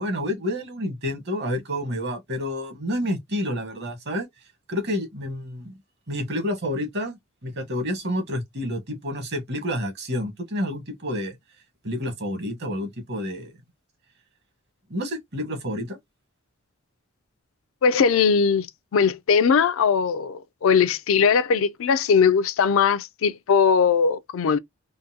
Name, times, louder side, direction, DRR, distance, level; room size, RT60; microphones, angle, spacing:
voice 1, 0.0-4.3 4.7-5.8 6.1-11.4 11.8-13.5 14.9-16.0, left 1 dB, 55° right, 1.1 m, -29 dB
voice 2, 17.8-18.7 18.9-24.6, left 6 dB, 70° left, 0.4 m, -20 dB
3.7 x 2.2 x 2.7 m
head